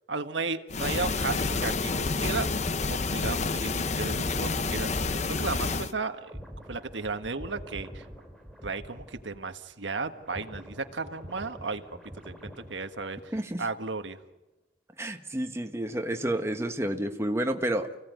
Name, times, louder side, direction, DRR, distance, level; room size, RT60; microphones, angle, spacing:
voice 1, 0.1-2.5 2.9-6.4 6.7-8.0 8.6-11.8 12.2-13.3 13.6-14.2, right 4 dB, 90° right, 8 dB, 1.5 m, -34 dB
sound 1, 0.7-5.9, left 3 dB, 40° left, 0.8 m, -29 dB
sound 2, 2.2-9.7 10.0-13.7 14.0-14.3, equal, 5° left, 5.0 m, -46 dB
voice 2, 13.3-13.6 15.0-17.9, right 1 dB, 15° right, 5 dB, 1.3 m, -30 dB
29.5 x 16.5 x 9.4 m, 1.0 s
head